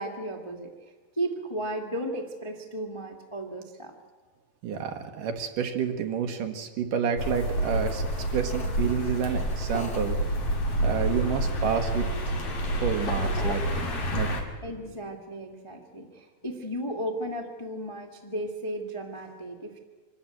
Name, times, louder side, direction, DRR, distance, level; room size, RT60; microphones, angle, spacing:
voice 1, 0.0-3.9 14.5-19.8, right 1 dB, 20° left, 1 dB, 0.8 m, -35 dB
voice 2, 4.6-8.0 8.3-10.2 10.8-12.1 12.8-14.3, right 7 dB, 65° right, 6 dB, 2.8 m, -29 dB
sound 1, 7.2-14.4, right 1 dB, 45° left, 3.1 m, -28 dB
25.0 x 13.0 x 9.1 m, 1.4 s
omnidirectional pair, 4.3 m